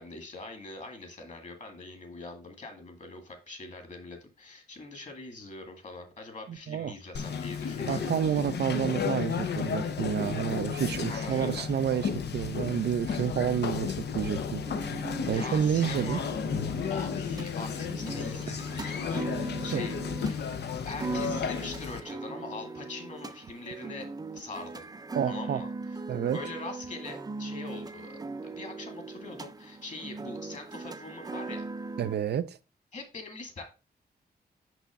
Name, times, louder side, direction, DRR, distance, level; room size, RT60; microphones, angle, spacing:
voice 1, 0.0-8.4 11.0-11.6 15.3-16.2 16.9-24.9 25.3-25.7 26.3-31.7 32.9-33.6, left 3 dB, 45° left, 2.0 m, -43 dB
voice 2, 6.5-6.9 7.9-14.6 15.3-16.2 18.5-18.6 19.7-19.8 25.1-25.6 26.1-26.4 32.0-32.6, right 9 dB, 80° right, 0.5 m, -29 dB
Conversation, 7.1-22.0, left 6 dB, 85° left, 0.8 m, -33 dB
sound 1, 14.6-32.2, right 3 dB, 25° right, 0.5 m, -39 dB
6.1 x 5.6 x 3.6 m
wide cardioid pair, 135°, 17 cm